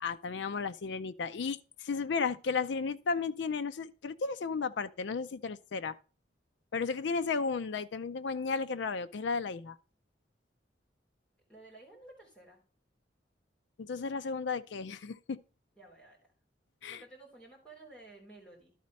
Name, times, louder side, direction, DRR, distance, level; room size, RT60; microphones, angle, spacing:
voice 1, 0.0-5.9 6.7-9.8 13.8-15.4 16.8-17.0, left 5 dB, 70° left, 0.4 m, -34 dB
voice 2, 11.5-12.6 15.7-16.3 16.9-18.7, right 2 dB, 5° left, 3.3 m, -54 dB
11.5 x 4.2 x 5.3 m
head